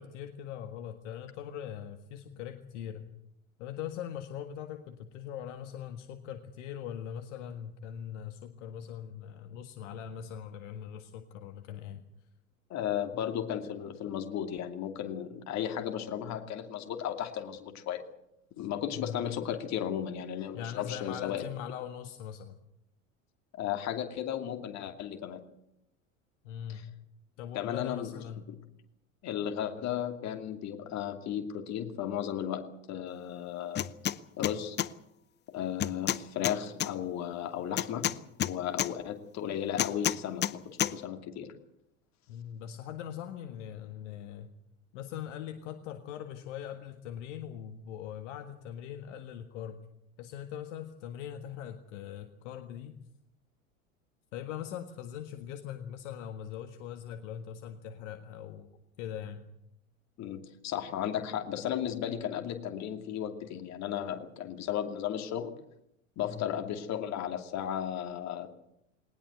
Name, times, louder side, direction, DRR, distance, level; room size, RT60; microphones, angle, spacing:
voice 1, 0.0-3.0 3.6-12.0 18.9-19.2 20.5-22.6 26.4-26.9 27.4-28.5 42.3-44.5 44.9-49.8 50.2-53.0 54.3-58.7 59.0-59.4 66.2-66.5, left 9 dB, 60° left, 7 dB, 1.7 m, -41 dB
voice 2, 12.7-18.0 18.6-21.5 23.6-25.4 26.7-26.8 27.5-28.1 28.5-28.6 29.2-33.8 34.4-34.8 35.5-38.1 38.4-41.5 60.2-65.6 66.2-68.5, left 10 dB, 40° left, 6 dB, 2.7 m, -35 dB
sound 1, 33.7-34.2 34.4-34.9 35.8-36.9 37.8-38.9 39.8-40.5 40.8-40.9, left 11 dB, 25° left, 0.7 m, -29 dB
20.0 x 19.5 x 8.1 m, 0.80 s
figure-of-eight pair, 75°, 41 cm